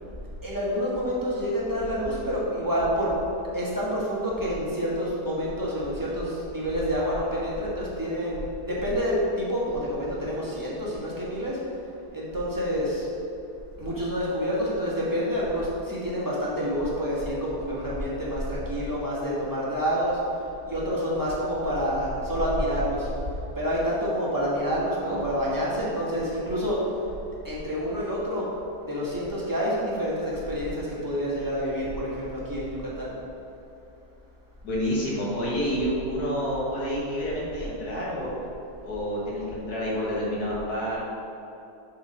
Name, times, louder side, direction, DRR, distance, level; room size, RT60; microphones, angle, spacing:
voice 1, 0.4-3.1 3.5-8.4 8.7-11.6 12.1-13.1 13.8-20.2 20.7-23.1 23.6-26.8 27.4-28.5 28.8-33.1, equal, 15° right, -7 dB, 1.3 m, -28 dB
voice 2, 34.6-38.3 38.8-41.0, equal, 70° left, -6 dB, 2.1 m, -29 dB
7.2 x 3.7 x 5.3 m, 2.8 s
omnidirectional pair, 1.7 m